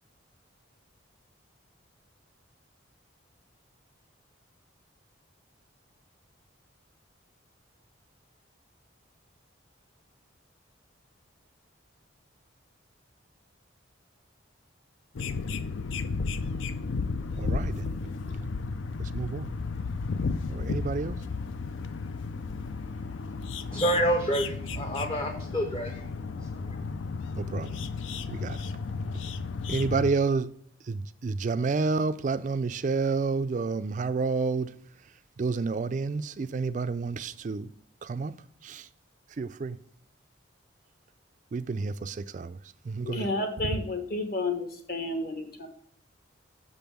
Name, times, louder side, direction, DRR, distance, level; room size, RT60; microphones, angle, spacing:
sound 1, 15.1-30.1, left 4 dB, 75° left, 0.5 m, -33 dB
voice 1, 17.4-17.9 18.3-18.4 19.0-19.5 20.5-21.2 27.3-27.8 28.3-28.6 29.7-30.5 30.9-34.8 35.4-37.7 38.0-38.3 38.6-38.9 39.4-39.8 41.5-42.6 42.8-43.3, right 4 dB, 40° right, 0.3 m, -30 dB
voice 2, 23.7-27.0, right 1 dB, 25° left, 0.6 m, -29 dB
voice 3, 43.0-45.7, left 2 dB, 50° left, 1.2 m, -31 dB
6.8 x 5.3 x 5.8 m
head